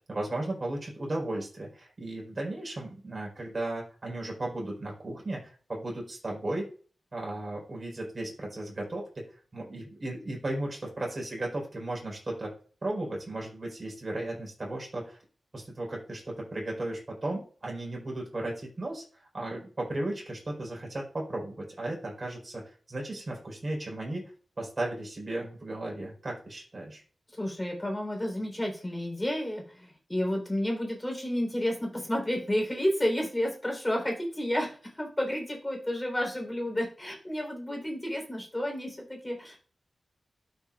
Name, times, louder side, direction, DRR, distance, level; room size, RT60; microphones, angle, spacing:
voice 1, 0.1-6.7 7.1-12.5 12.8-15.2 15.5-22.6 22.9-24.2 24.6-27.0, right 1 dB, 35° right, -1 dB, 4.3 m, -35 dB
voice 2, 27.3-39.6, left 1 dB, 15° left, 1 dB, 3.8 m, -31 dB
12.5 x 6.4 x 2.4 m, 0.40 s
wide cardioid pair, 115°, 0 cm